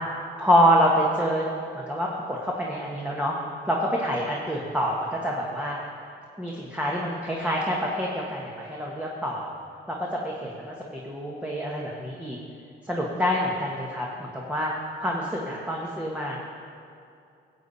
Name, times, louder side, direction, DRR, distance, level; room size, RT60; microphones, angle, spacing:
voice 1, 0.4-1.5 1.7-3.3 3.7-5.8 6.4-9.5 9.9-12.4 12.9-14.7 15.0-16.4, equal, 5° right, -3 dB, 1.4 m, -26 dB
15.0 x 8.2 x 4.2 m, 2.5 s
cardioid pair, 90°, 20 cm